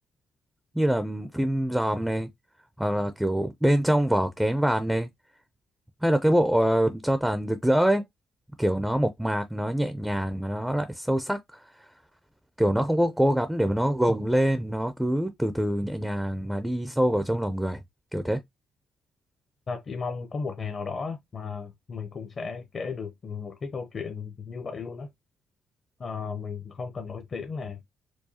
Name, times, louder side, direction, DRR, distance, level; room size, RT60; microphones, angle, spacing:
voice 1, 0.8-2.3 2.8-5.1 6.0-8.0 8.6-11.6 12.6-17.8 18.1-18.4, right 1 dB, 5° right, 0.4 m, -25 dB
voice 2, 19.7-25.1 26.0-27.8, left 5 dB, 45° left, 0.6 m, -35 dB
4.7 x 2.2 x 2.8 m
cardioid pair, 90°, 0 cm